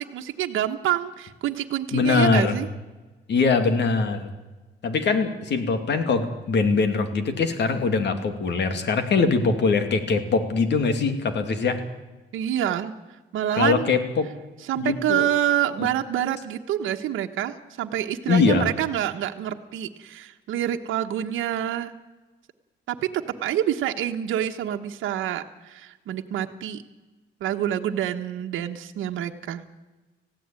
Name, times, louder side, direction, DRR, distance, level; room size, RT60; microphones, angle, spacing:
voice 1, 0.0-2.7 12.3-12.9 13.3-13.9 14.7-21.9 22.9-26.8 27.4-29.7, right 11 dB, 80° right, 4 dB, 1.2 m, -27 dB
voice 2, 1.9-2.6 3.3-4.3 4.8-11.8 13.6-14.3 14.8-15.3 15.8-15.9 18.3-18.7, left 4 dB, 60° left, 8 dB, 2.7 m, -22 dB
19.0 x 16.0 x 9.0 m, 1.2 s
cardioid pair, 90°, 20 cm